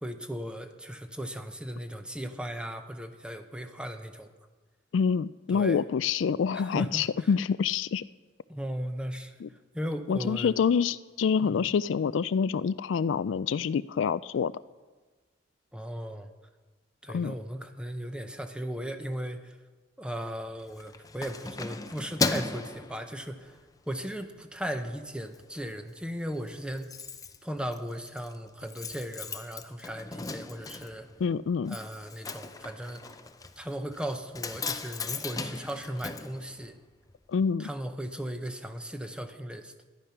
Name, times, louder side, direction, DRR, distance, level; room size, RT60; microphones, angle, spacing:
voice 1, 0.0-4.3 5.5-5.8 6.5-7.3 8.5-9.4 9.7-10.5 11.4-11.7 15.7-16.3 17.0-19.6 20.0-23.5 23.9-26.9 27.4-31.1 31.7-33.0 33.6-36.8 37.6-39.7, equal, 5° right, 7 dB, 0.9 m, -37 dB
voice 2, 4.9-8.0 9.4-9.5 10.1-14.5 17.1-17.3 31.2-31.8 37.3-37.7, left 6 dB, 85° left, 17 dB, 0.4 m, -27 dB
Keys jangling, 20.6-23.7 24.1-24.4 24.7-25.4 25.7-25.8 26.0-26.1 26.3-37.1 37.4-37.5, left 3 dB, 20° left, 0.6 m, -37 dB
13.0 x 10.5 x 5.8 m, 1.3 s
head